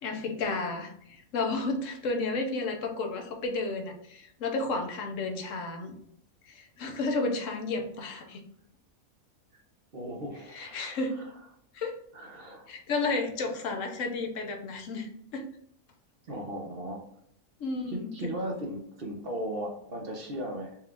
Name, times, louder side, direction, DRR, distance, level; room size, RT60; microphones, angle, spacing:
voice 1, 0.0-5.9 6.5-8.4 10.5-11.2 11.7-12.0 12.7-15.5 17.6-18.3, left 3 dB, 70° left, 4 dB, 1.0 m, -32 dB
voice 2, 9.9-11.3 12.1-12.8 16.2-17.0 17.9-20.8, right 1 dB, 50° right, 0 dB, 0.9 m, -37 dB
4.4 x 2.4 x 3.4 m, 0.72 s
omnidirectional pair, 1.5 m